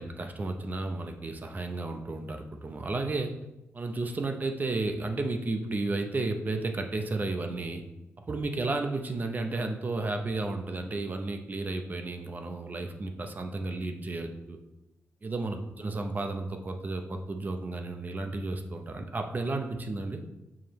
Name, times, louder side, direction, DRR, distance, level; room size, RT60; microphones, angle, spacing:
voice 1, 0.0-3.4 3.7-7.8 8.2-14.6 15.2-20.2, right 2 dB, 35° right, 5 dB, 0.7 m, -33 dB
7.1 x 4.8 x 3.1 m, 0.96 s
cardioid pair, 105°, 5 cm